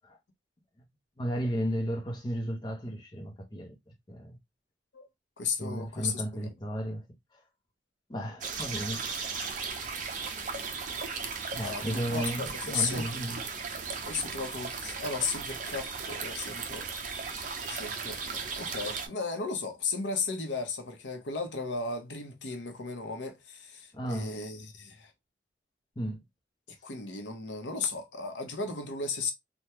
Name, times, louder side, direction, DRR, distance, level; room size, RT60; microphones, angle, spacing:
voice 1, 1.2-4.4 5.6-7.0 8.1-9.1 11.5-13.5 23.9-24.3 26.0-26.2, equal, 25° left, 0.7 m, -34 dB
voice 2, 5.4-6.5 11.6-13.1 14.1-17.2 17.7-25.1 26.8-29.3, left 4 dB, 85° left, 0.8 m, -35 dB
sound 1, 8.4-19.1, right 5 dB, 45° right, 0.6 m, -36 dB
3.4 x 2.2 x 2.8 m
head